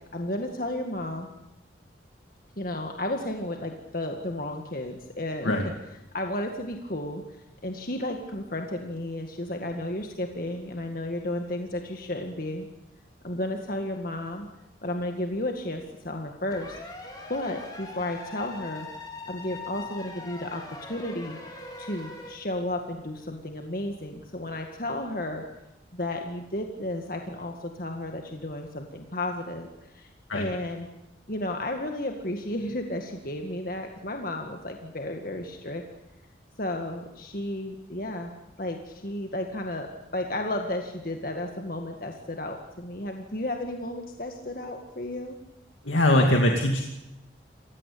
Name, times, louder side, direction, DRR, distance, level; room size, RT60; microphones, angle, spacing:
voice 1, 0.1-1.3 2.6-5.6 6.1-7.2 7.6-12.7 13.2-14.5 14.8-16.8 17.3-18.9 19.3-21.4 21.8-25.5 25.9-30.9 31.3-35.8 36.6-38.3 38.6-45.4, left 1 dB, 50° left, 3 dB, 1.9 m, -33 dB
sound 1, 16.5-22.3, left 3 dB, 20° left, 4.1 m, -41 dB
voice 2, 45.9-46.8, left 1 dB, 90° left, 2 dB, 2.4 m, -21 dB
28.5 x 16.0 x 8.6 m, 0.94 s
head